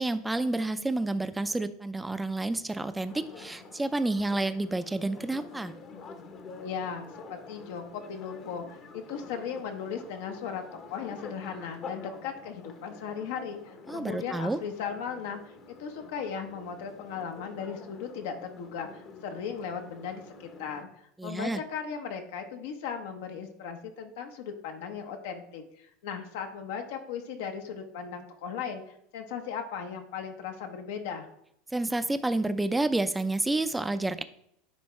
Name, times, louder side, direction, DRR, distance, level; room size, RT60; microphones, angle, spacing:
voice 1, 0.0-5.7 13.9-14.6 21.2-21.6 31.7-34.2, right 2 dB, 10° right, 11 dB, 0.4 m, -29 dB
sound 1, 3.1-20.8, left 4 dB, 40° left, 0.9 m, -48 dB
voice 2, 6.6-20.9 21.2-31.3, left 7 dB, 75° left, 5 dB, 0.9 m, -37 dB
9.6 x 3.5 x 3.2 m, 0.73 s
supercardioid pair, 120°, 0 cm